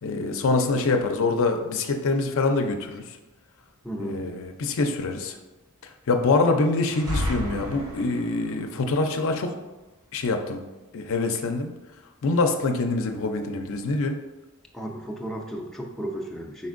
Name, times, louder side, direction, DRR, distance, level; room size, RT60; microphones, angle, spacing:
voice 1, 0.0-3.2 4.0-5.4 6.1-9.5 10.1-10.6 10.9-11.7 12.2-14.2, left 3 dB, 65° left, 5 dB, 0.5 m, -25 dB
voice 2, 3.8-4.2 14.7-16.7, right 1 dB, ahead, -1 dB, 0.4 m, -34 dB
sound 1, 6.8-8.5, left 1 dB, 80° right, 0.9 m, -31 dB
5.2 x 4.1 x 2.5 m, 1.1 s
head